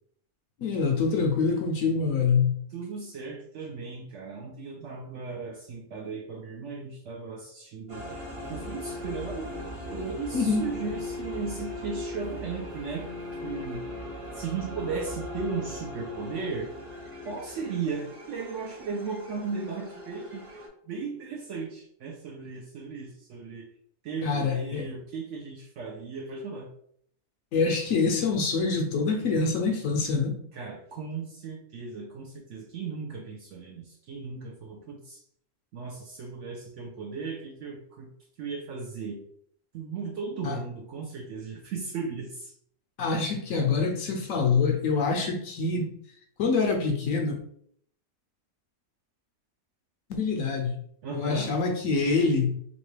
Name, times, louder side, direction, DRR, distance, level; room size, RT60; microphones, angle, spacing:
voice 1, 0.6-2.6 10.3-10.7 24.2-24.9 27.5-30.4 40.4-40.6 43.0-45.9 46.4-47.4 50.1-50.8 51.1-52.6, left 4 dB, 70° left, 3 dB, 0.9 m, -25 dB
voice 2, 2.7-9.5 9.9-13.1 13.4-13.8 14.3-16.7 17.2-20.5 20.9-23.7 24.0-26.7 30.5-35.2 35.7-38.1 38.4-39.2 39.7-42.5 51.0-51.5, right 4 dB, 70° right, 1 dB, 0.7 m, -36 dB
sound 1, 7.9-20.7, left 1 dB, 35° right, 0.6 m, -39 dB
2.9 x 2.7 x 3.1 m, 0.65 s
omnidirectional pair, 1.6 m